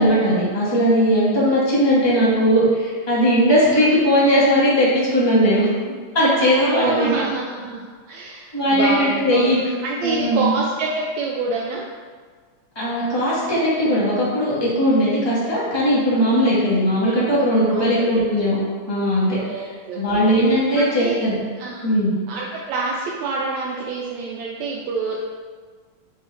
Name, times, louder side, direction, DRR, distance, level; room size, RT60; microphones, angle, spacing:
voice 1, 0.0-5.7 6.1-7.1 8.5-9.6 10.0-10.5 12.7-18.6 18.9-19.7 19.9-21.4 21.8-22.1, equal, 10° left, -8 dB, 1.2 m, -18 dB
voice 2, 6.4-11.8 17.7-18.2 19.4-20.0 20.8-21.2 21.6-21.8 22.3-25.2, right 3 dB, 80° right, -3 dB, 1.9 m, -27 dB
10.5 x 4.0 x 2.6 m, 1.6 s
omnidirectional pair, 3.3 m